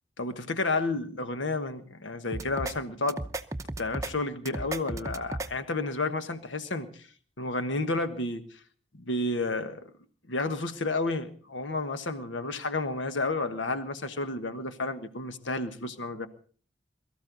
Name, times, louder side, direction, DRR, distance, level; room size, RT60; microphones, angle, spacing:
voice 1, 0.2-3.2 3.8-6.9 7.4-8.5 9.1-9.8 10.3-16.3, left 2 dB, 90° left, 9 dB, 1.3 m, -31 dB
sound 1, 2.3-2.7 3.1-4.1 4.5-5.5, right 2 dB, 15° right, 0.8 m, -34 dB
22.5 x 14.0 x 4.0 m, 0.44 s
head